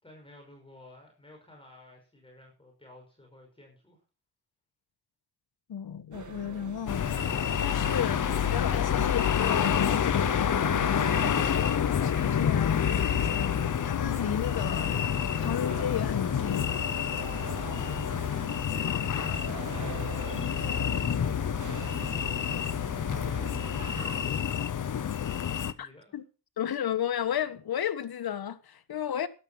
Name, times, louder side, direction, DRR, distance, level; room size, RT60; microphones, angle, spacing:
voice 1, 0.0-4.0 17.0-19.0 19.5-21.9 22.9-26.2, left 1 dB, 15° left, 5.8 m, -52 dB
voice 2, 5.7-7.2 7.6-8.2 8.5-11.2 11.9-14.9 15.4-16.7 25.8-26.2 26.6-29.3, left 9 dB, 75° left, 1.5 m, -33 dB
sound 1, 6.1-24.3, right 5 dB, 50° right, 2.3 m, -42 dB
sound 2, 6.9-25.7, left 9 dB, 55° left, 0.9 m, -28 dB
13.5 x 11.0 x 5.8 m
wide cardioid pair, 120°, 37 cm